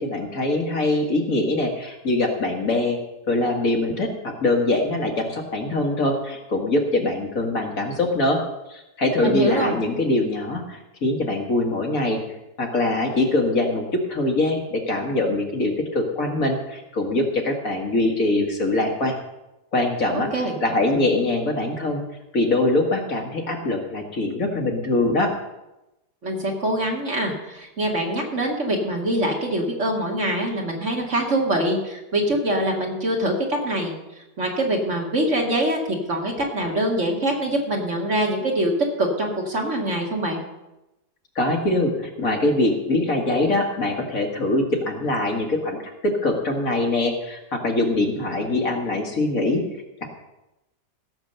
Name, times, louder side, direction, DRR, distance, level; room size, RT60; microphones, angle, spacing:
voice 1, 0.0-3.0 3.3-8.4 8.7-12.2 12.6-19.2 19.7-20.3 20.6-22.0 22.3-25.3 41.4-49.6 50.0-50.1, left 2 dB, 55° left, 2 dB, 2.1 m, -23 dB
voice 2, 9.2-9.7 20.1-20.5 26.2-38.7 39.0-40.4, right 1 dB, 45° right, 1 dB, 2.4 m, -24 dB
16.0 x 7.2 x 6.7 m, 0.96 s
omnidirectional pair, 1.8 m